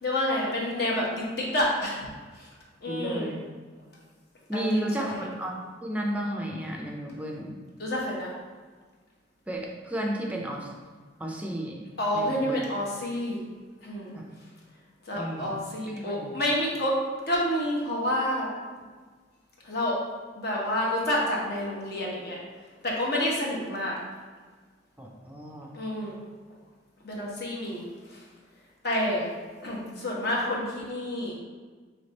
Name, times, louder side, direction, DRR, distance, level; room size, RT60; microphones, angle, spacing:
voice 1, 0.0-2.1 2.3-2.5 2.8-3.3 4.5-5.2 7.8-8.3 12.0-13.4 13.8-14.2 15.1-17.0 17.3-18.5 19.6-19.9 20.3-22.4 22.8-24.0 25.7-26.2 27.0-27.8 28.1-28.2 28.8-29.3 29.6-31.4, left 1 dB, 60° left, -3 dB, 0.9 m, -29 dB
voice 2, 2.9-3.4 4.5-7.6 9.5-10.7 11.2-11.8 12.1-12.6 14.1-14.3 15.2-15.6 15.9-16.4 25.0-25.7, right 1 dB, 10° right, 0 dB, 0.4 m, -33 dB
3.4 x 3.2 x 4.0 m, 1.5 s
head